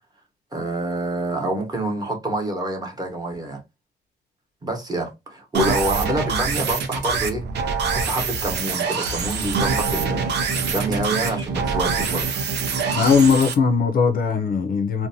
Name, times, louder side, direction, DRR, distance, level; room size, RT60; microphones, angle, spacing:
voice 1, 0.5-3.6 4.6-7.4 7.8-10.3 10.6-12.4, right 1 dB, 20° right, 0.9 m, -27 dB
sound 1, 5.5-13.5, right 5 dB, 60° right, 0.6 m, -24 dB
voice 2, 12.9-15.1, left 5 dB, 50° left, 0.4 m, -19 dB
2.6 x 2.1 x 2.6 m
cardioid pair, 115°, 20 cm